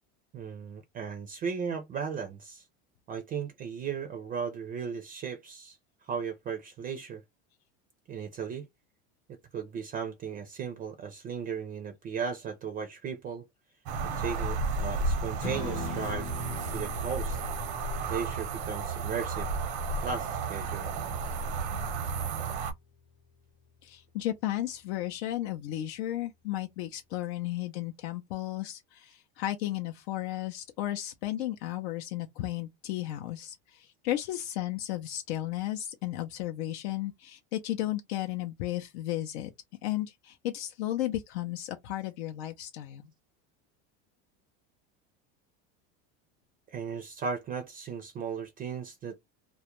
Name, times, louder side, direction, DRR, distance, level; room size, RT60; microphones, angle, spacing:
voice 1, 0.3-2.6 3.1-5.8 6.0-7.2 8.1-8.7 9.5-13.4 14.0-16.3 16.7-17.4 18.1-19.5 20.0-20.9 46.7-49.2, right 6 dB, 30° right, 0.4 m, -36 dB
sound 1, 13.9-22.7, right 4 dB, 85° right, 0.8 m, -33 dB
Strum, 15.4-21.7, left 5 dB, 40° left, 0.8 m, -42 dB
voice 2, 23.8-39.5 39.8-43.0, left 14 dB, 85° left, 0.5 m, -34 dB
2.3 x 2.1 x 2.9 m
supercardioid pair, 140°, 31 cm